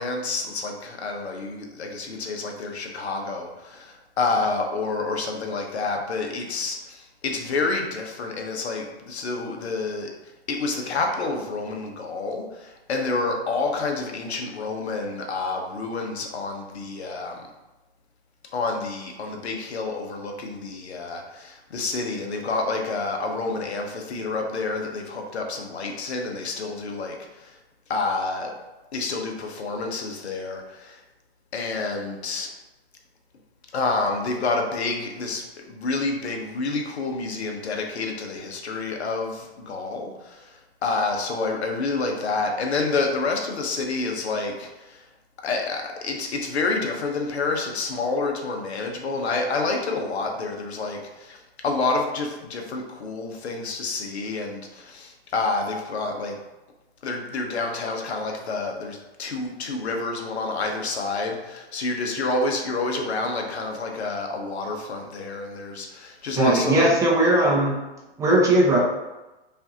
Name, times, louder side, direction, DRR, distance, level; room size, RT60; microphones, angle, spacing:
voice 1, 0.0-10.1 10.5-17.4 18.5-27.6 27.9-28.5 28.9-31.0 31.5-32.5 33.7-45.0 45.4-51.4 51.6-56.4 57.0-66.9, left 3 dB, 85° left, 2 dB, 0.9 m, -28 dB
voice 2, 66.4-67.8 68.2-68.8, right 1 dB, 10° right, -4 dB, 0.4 m, -19 dB
5.4 x 2.6 x 2.8 m, 1.0 s
hypercardioid pair, 135°, 32 cm